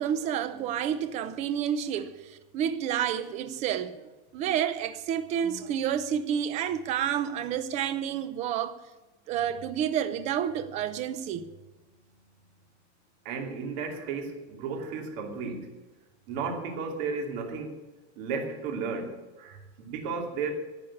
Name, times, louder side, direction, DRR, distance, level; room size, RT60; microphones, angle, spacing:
voice 1, 0.0-8.8 9.3-11.5, right 9 dB, 20° right, 0.6 m, -30 dB
voice 2, 13.2-15.7 16.3-17.8 18.2-20.5, right 5 dB, 40° right, 2.6 m, -34 dB
11.5 x 8.5 x 9.7 m
supercardioid pair, 170°, 34 cm